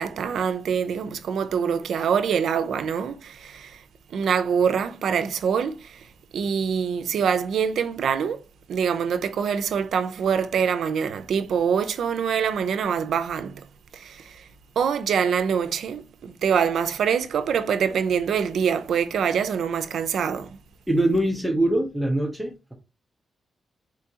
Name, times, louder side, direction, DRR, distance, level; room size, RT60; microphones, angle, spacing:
voice 1, 0.0-3.8 4.1-6.0 6.3-8.4 8.7-13.6 13.9-14.4 14.8-20.5, right 7 dB, 75° right, 0.5 m, -25 dB
voice 2, 20.9-22.7, right 1 dB, 5° right, 0.6 m, -23 dB
4.4 x 3.6 x 2.8 m
wide cardioid pair, 160°, 0 cm